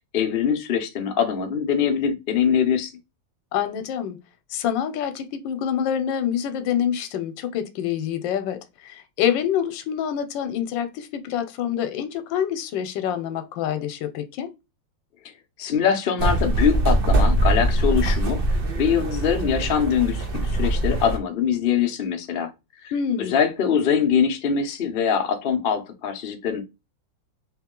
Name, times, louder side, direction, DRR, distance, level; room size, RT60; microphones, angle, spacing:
voice 1, 0.1-2.9 15.6-22.5 22.8-22.9 23.2-26.6, left 7 dB, 65° left, 0.5 m, -23 dB
voice 2, 3.5-4.2 4.5-14.5 22.9-23.3, left 9 dB, 80° left, 1.3 m, -26 dB
sound 1, 16.2-21.2, right 1 dB, 75° right, 0.5 m, -22 dB
3.3 x 3.1 x 3.6 m
omnidirectional pair, 2.0 m